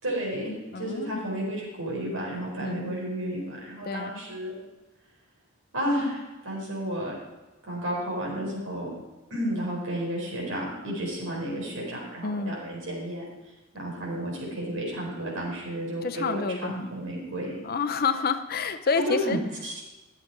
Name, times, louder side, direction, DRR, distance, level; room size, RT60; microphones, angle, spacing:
voice 1, 0.0-4.5 5.7-7.1 7.7-8.9 9.3-13.2 13.7-17.5 18.9-19.7, equal, 80° right, -3 dB, 4.6 m, -32 dB
voice 2, 0.7-1.2 2.6-2.9 3.9-4.1 12.2-12.6 16.0-16.9 17.6-19.4, left 4 dB, 45° left, 10 dB, 0.6 m, -28 dB
12.5 x 7.8 x 4.7 m, 1.1 s
head